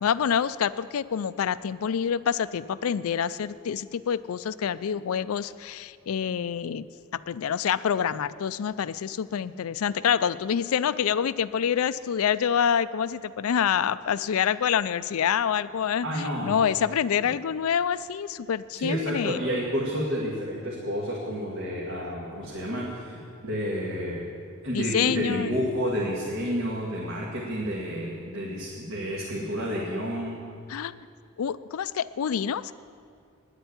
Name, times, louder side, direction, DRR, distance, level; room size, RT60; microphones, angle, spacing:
voice 1, 0.0-6.9 7.1-19.4 24.7-25.5 30.7-30.9 31.4-32.7, left 8 dB, 70° left, 16 dB, 0.4 m, -27 dB
voice 2, 16.0-16.6 18.7-24.3 24.6-30.5, equal, 65° right, -5 dB, 1.9 m, -30 dB
10.0 x 7.9 x 9.6 m, 2.3 s
head